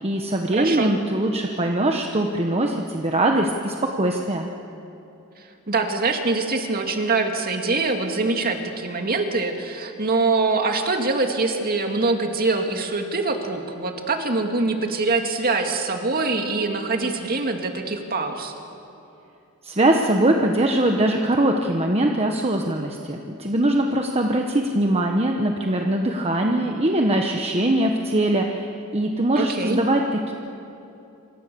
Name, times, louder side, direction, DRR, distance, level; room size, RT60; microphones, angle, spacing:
voice 1, 0.0-4.5 19.6-30.3, right 1 dB, 30° right, 2 dB, 1.3 m, -22 dB
voice 2, 0.5-0.9 5.4-18.5 29.4-29.8, right 3 dB, 45° right, 4 dB, 2.4 m, -24 dB
26.5 x 26.0 x 7.0 m, 2.8 s
head